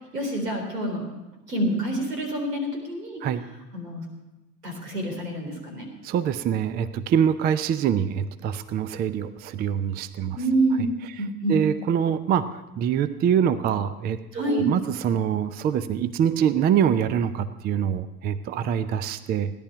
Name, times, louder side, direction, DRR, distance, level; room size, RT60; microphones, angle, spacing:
voice 1, 0.1-1.0 1.5-3.2 3.7-4.0 4.6-5.9 10.4-10.9 11.2-11.6 14.3-14.7, right 1 dB, 80° right, 3 dB, 3.8 m, -27 dB
voice 2, 6.0-10.4 11.5-19.5, right 8 dB, 20° right, 14 dB, 0.5 m, -24 dB
17.0 x 11.0 x 5.7 m, 1.0 s
figure-of-eight pair, 80°, 47 cm